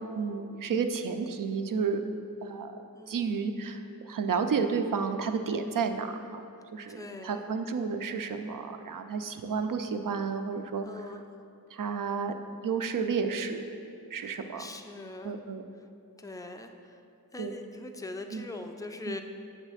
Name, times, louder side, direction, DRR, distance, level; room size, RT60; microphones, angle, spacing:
voice 1, 0.0-2.0 2.4-2.7 3.1-6.5 6.7-10.9 11.7-12.3 12.6-13.6 14.1-14.6 15.2-15.6 17.4-17.6 18.3-18.5 19.1-19.2, right 5 dB, 60° right, 7 dB, 0.5 m, -31 dB
voice 2, 2.9-3.4 6.6-7.4 10.8-11.4 14.2-15.4 16.2-17.0 17.3-19.2, left 2 dB, 10° left, 5 dB, 0.4 m, -42 dB
8.1 x 3.2 x 6.3 m, 2.6 s
wide cardioid pair, 75°, 36 cm